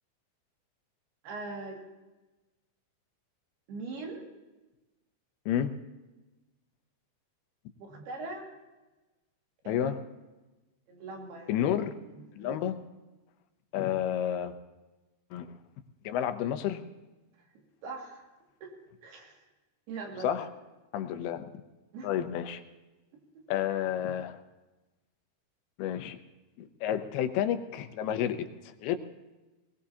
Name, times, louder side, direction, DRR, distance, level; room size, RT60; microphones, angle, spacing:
voice 1, 1.2-1.8 3.7-4.2 7.8-8.6 9.6-9.9 10.9-11.6 12.0-12.6 17.8-18.3 18.6-18.7 19.0-19.4 19.9-20.5 21.1-21.2 21.9-22.1 23.1-23.2, right 3 dB, 85° right, 0 dB, 4.2 m, -41 dB
voice 2, 9.7-10.0 11.5-12.0 12.4-12.8 13.7-14.5 15.3-15.5 16.0-16.8 20.2-20.5 20.9-21.5 22.0-22.6 23.5-24.4 25.8-26.2 26.6-29.0, left 10 dB, 85° left, 8 dB, 2.8 m, -30 dB
20.0 x 20.0 x 2.8 m, 1.1 s
omnidirectional pair, 4.4 m